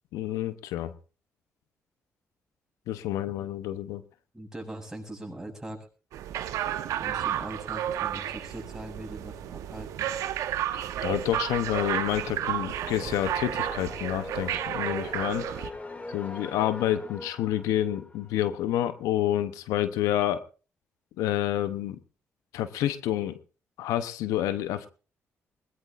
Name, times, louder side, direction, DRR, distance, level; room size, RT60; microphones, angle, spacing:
voice 1, 0.1-0.9 2.9-4.0 11.0-15.4 16.1-20.4 21.2-22.0 22.5-23.4 23.8-24.9, left 12 dB, 90° left, 12 dB, 0.7 m, -28 dB
voice 2, 4.3-5.9 7.0-10.1, right 1 dB, 10° right, 0 dB, 7.5 m, -41 dB
sound 1, 6.1-15.7, right 11 dB, 80° right, 1.0 m, -32 dB
sound 2, 11.2-18.9, left 2 dB, 25° left, 2.4 m, -43 dB
21.0 x 19.0 x 2.5 m, 0.36 s
supercardioid pair, 55°, 6 cm